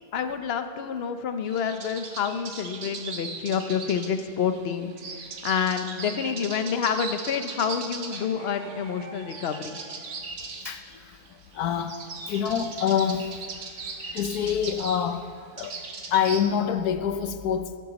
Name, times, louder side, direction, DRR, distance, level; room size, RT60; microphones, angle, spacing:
voice 1, 0.1-9.8, left 7 dB, 55° left, 9 dB, 0.8 m, -28 dB
sound 1, 1.4-16.5, right 4 dB, 55° right, 1.4 m, -39 dB
voice 2, 10.6-17.8, left 8 dB, 85° left, 9 dB, 1.2 m, -27 dB
16.0 x 12.0 x 4.0 m, 2.1 s
omnidirectional pair, 1.6 m